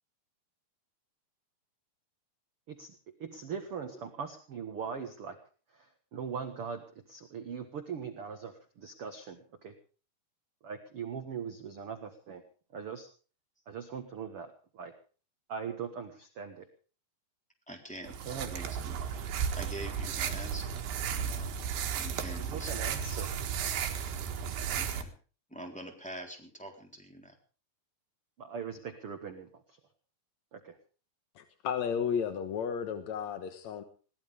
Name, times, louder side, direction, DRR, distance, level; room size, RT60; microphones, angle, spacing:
voice 1, 2.7-5.4 5.7-9.7 10.6-12.4 12.7-13.1 13.7-14.9 15.5-16.7 18.0-18.5 22.5-23.3 28.4-29.8 30.5-30.8, right 6 dB, 55° right, 6 dB, 1.6 m, -41 dB
voice 2, 17.7-20.8 21.1-21.6 22.0-22.8 24.7-25.1 25.5-27.3, right 1 dB, ahead, 1 dB, 3.1 m, -45 dB
sound 1, 18.1-25.0, right 7 dB, 75° right, 3.6 m, -34 dB
voice 3, 31.4-33.8, left 7 dB, 65° left, 8 dB, 1.9 m, -33 dB
21.5 x 18.0 x 3.5 m, 0.38 s
omnidirectional pair, 4.7 m